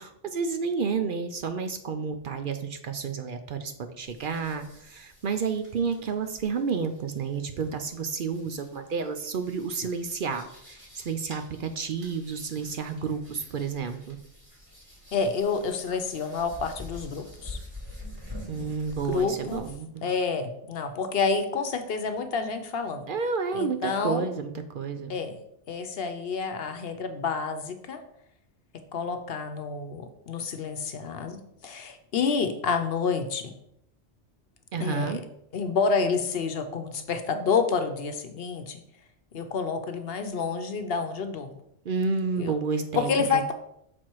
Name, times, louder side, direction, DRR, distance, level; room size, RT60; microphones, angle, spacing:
voice 1, 0.0-14.2 18.5-20.0 23.1-25.1 34.7-35.2 41.8-43.5, right 5 dB, 60° right, 7 dB, 0.7 m, -30 dB
sound 1, 4.1-19.8, left 1 dB, 30° right, 2.6 m, -47 dB
voice 2, 15.1-17.6 18.5-18.7 19.1-19.6 20.0-23.1 23.5-24.2 25.1-25.4 25.7-28.0 28.9-33.5 34.8-35.2 35.5-38.8 39.3-41.5 42.4-42.5 42.9-43.5, left 5 dB, 65° left, 7 dB, 0.9 m, -29 dB
6.0 x 4.4 x 4.6 m, 0.76 s
omnidirectional pair, 1.1 m